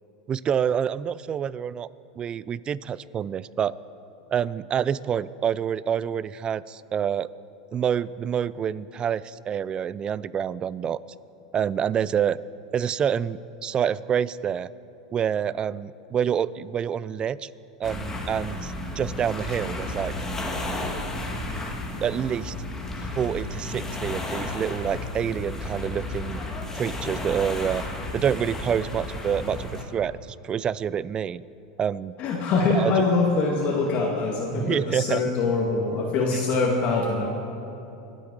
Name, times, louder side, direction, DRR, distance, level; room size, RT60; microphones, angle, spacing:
voice 1, 0.3-1.9 2.2-3.7 4.3-7.3 7.7-11.0 11.5-12.4 12.7-14.7 15.1-17.5 17.8-20.1 22.0-22.5 23.1-26.4 26.8-27.8 28.1-31.4 31.8-32.2 32.7-32.9 34.5-35.2 36.3-36.4, right 8 dB, 25° right, 19 dB, 0.4 m, -27 dB
sound 1, 17.8-29.8, left 2 dB, 15° left, 1.8 m, -33 dB
voice 2, 32.2-37.3, left 3 dB, 45° left, -2 dB, 2.1 m, -24 dB
24.5 x 8.6 x 4.8 m, 2.9 s
hypercardioid pair, 115°, 3 cm